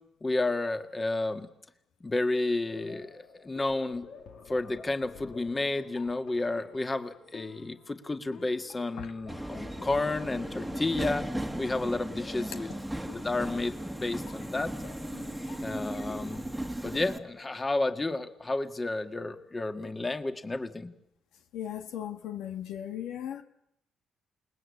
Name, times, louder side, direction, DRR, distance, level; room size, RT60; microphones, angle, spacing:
voice 1, 0.2-1.5 2.0-4.1 4.5-11.3 11.6-12.7 13.0-14.7 15.6-16.5 16.8-20.9, left 2 dB, 20° left, 1.9 m, -31 dB
sound 1, 2.7-17.9, left 5 dB, 70° left, 2.8 m, -50 dB
Subway metro underground, 9.3-17.2, right 1 dB, 5° right, 1.8 m, -36 dB
voice 2, 21.5-23.4, left 10 dB, 85° left, 1.7 m, -37 dB
28.5 x 20.0 x 8.5 m
cardioid pair, 90°, 0 cm